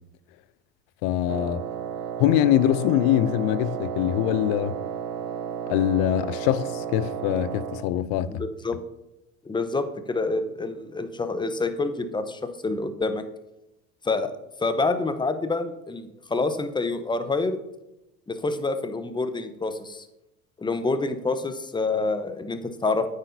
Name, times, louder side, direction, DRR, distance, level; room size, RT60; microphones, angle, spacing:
voice 1, 1.0-1.6 2.2-4.8 5.7-8.3, left 12 dB, 60° left, 0.6 m, -23 dB
Wind instrument woodwind instrument, 1.3-7.9, right 7 dB, 75° right, 0.7 m, -33 dB
voice 2, 8.3-8.8 9.4-13.2 14.0-14.3 14.6-17.6 18.3-20.1 20.6-23.1, left 3 dB, 10° left, 0.9 m, -27 dB
9.1 x 9.0 x 2.7 m
hypercardioid pair, 75°, 40 cm